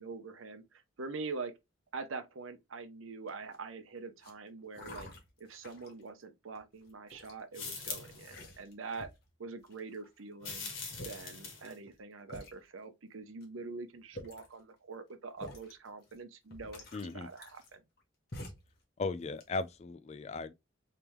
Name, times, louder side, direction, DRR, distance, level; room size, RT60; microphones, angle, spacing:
voice 1, 0.0-1.5 1.9-5.1 5.4-9.1 9.4-10.7 11.0-17.8, right 4 dB, 80° right, 0.7 m, -44 dB
sound 1, 3.3-3.7 4.2-4.3 4.7-6.0 6.6-7.4 8.0-9.3 9.7-10.2 10.7-10.8 10.9-11.3 11.9-12.0 12.3-12.5 13.4-13.5 14.0-14.6 15.4-15.7 16.1-16.2 16.5-18.0 18.3-18.7 19.2-19.8, left 1 dB, 50° left, 1.3 m, -48 dB
sound 2, 7.5-8.3 10.4-11.8, left 5 dB, 80° left, 1.5 m, -42 dB
voice 2, 16.9-17.3 19.0-20.5, left 3 dB, 30° left, 0.3 m, -37 dB
3.5 x 3.3 x 2.9 m
head